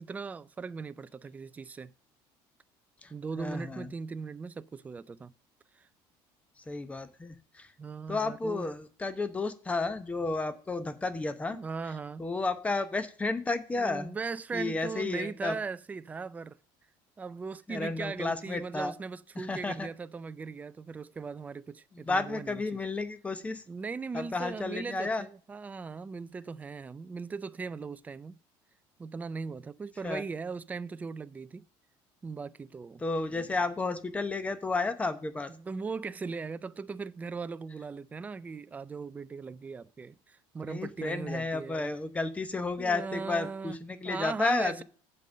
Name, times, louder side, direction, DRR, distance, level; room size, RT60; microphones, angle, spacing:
voice 1, 0.0-1.9 3.1-5.3 5.7-5.9 7.8-8.7 11.5-12.3 13.8-16.6 17.2-22.8 23.7-28.4 29.0-31.7 32.2-33.0 33.3-33.5 35.5-41.9 42.8-43.8 44.0-44.8, right 4 dB, 15° right, 0.4 m, -39 dB
voice 2, 3.0-3.9 6.7-7.7 8.1-11.6 12.2-14.1 14.5-15.6 17.7-18.9 19.4-19.9 22.0-23.6 24.1-25.2 30.0-30.2 33.0-35.5 40.7-44.8, left 3 dB, 10° left, 0.8 m, -32 dB
7.5 x 5.3 x 6.2 m
cardioid pair, 150°, 11 cm